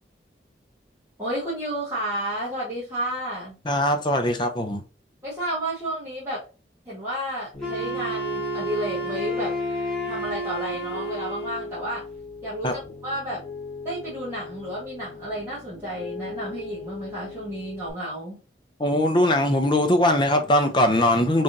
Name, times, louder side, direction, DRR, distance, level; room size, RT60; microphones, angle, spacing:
voice 1, 1.2-3.6 5.2-6.4 6.8-9.6 10.1-12.0 12.4-13.4 13.8-18.4, right 1 dB, 15° right, 1.5 m, -31 dB
voice 2, 3.7-4.8 12.6-12.7 18.8-21.4, left 1 dB, 25° left, 0.5 m, -21 dB
Piano, 7.5-17.9, left 4 dB, 65° left, 1.4 m, -39 dB
Wind instrument woodwind instrument, 7.6-11.7, right 1 dB, ahead, 2.1 m, -30 dB
3.6 x 3.3 x 2.6 m
head